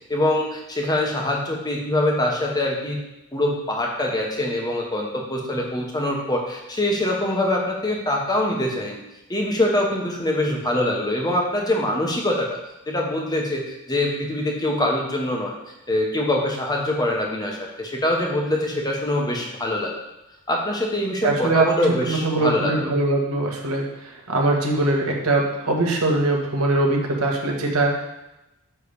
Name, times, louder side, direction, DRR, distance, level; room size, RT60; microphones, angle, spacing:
voice 1, 0.1-3.0 3.3-9.0 9.3-12.6 12.9-13.6 13.9-15.5 15.9-19.9 20.5-22.9, left 1 dB, 15° left, -1 dB, 1.2 m, -24 dB
voice 2, 21.2-21.7 22.1-28.0, right 2 dB, 70° right, -1 dB, 1.6 m, -22 dB
9.6 x 3.4 x 6.9 m, 0.93 s
head